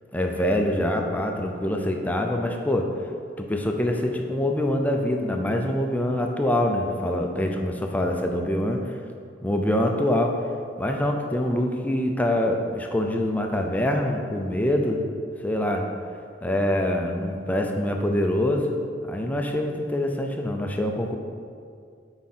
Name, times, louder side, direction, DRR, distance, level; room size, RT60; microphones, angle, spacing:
voice 1, 0.1-2.9 3.4-8.9 9.4-10.3 10.8-15.0 15.4-15.9 16.4-18.8 19.1-21.2, left 1 dB, 10° left, 2 dB, 0.5 m, -25 dB
7.5 x 4.9 x 4.3 m, 2.2 s
head